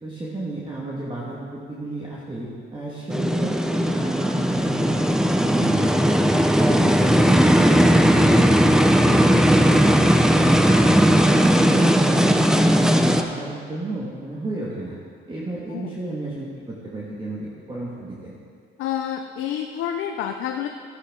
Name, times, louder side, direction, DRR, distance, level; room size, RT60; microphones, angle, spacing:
voice 1, 0.0-5.8 6.6-15.0 15.3-18.4, right 2 dB, 25° right, -6 dB, 1.9 m, -32 dB
sound 1, 3.1-13.2, equal, 5° right, 0.6 m, -17 dB
voice 2, 18.8-20.7, left 10 dB, 85° left, 5 dB, 0.6 m, -28 dB
13.5 x 9.5 x 3.8 m, 2.2 s
cardioid pair, 90°, 20 cm